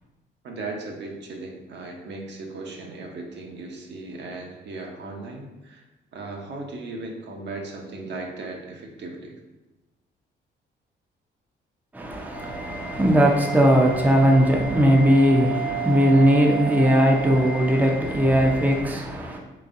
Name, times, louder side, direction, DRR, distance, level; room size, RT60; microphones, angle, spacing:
voice 1, 0.4-5.8 6.1-9.3, right 3 dB, 60° right, 1 dB, 0.8 m, -37 dB
voice 2, 11.9-19.4, equal, 10° right, 0 dB, 0.5 m, -19 dB
sound 1, 12.3-18.8, right 6 dB, 45° left, 0.8 m, -33 dB
4.0 x 3.3 x 2.6 m, 1.1 s
cardioid pair, 90°, 20 cm